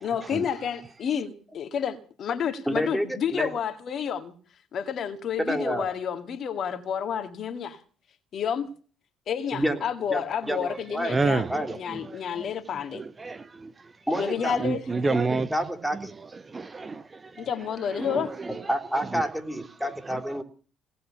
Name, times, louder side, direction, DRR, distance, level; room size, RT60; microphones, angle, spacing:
voice 1, 0.0-4.3 4.7-7.8 8.3-8.7 9.3-11.5 11.7-13.0 14.2-15.2 17.4-18.3, left 7 dB, 55° left, 1.9 m, -30 dB
voice 2, 2.7-3.5 5.4-5.9 9.5-9.8 10.1-11.2 11.5-11.8 14.1-14.6 15.5-16.1 18.7-20.4, equal, 5° right, 3.9 m, -29 dB
voice 3, 11.1-11.7 12.1-12.5 12.9-13.7 14.1-15.5 16.4-17.5 17.9-18.6 20.0-20.2, right 3 dB, 30° right, 0.9 m, -29 dB
18.5 x 7.7 x 9.9 m
hypercardioid pair, 55°, 0 cm